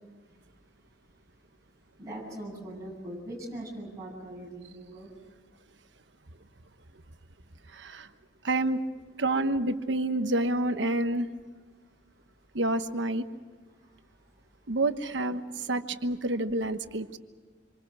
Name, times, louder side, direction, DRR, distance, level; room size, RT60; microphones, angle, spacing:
voice 1, 2.0-5.1, right 1 dB, 20° right, -4 dB, 7.5 m, -41 dB
voice 2, 7.7-8.1 8.4-8.8 9.2-11.3 12.5-13.3 14.7-17.2, right 2 dB, 70° right, 9 dB, 1.2 m, -28 dB
26.5 x 25.0 x 6.1 m, 1.4 s
head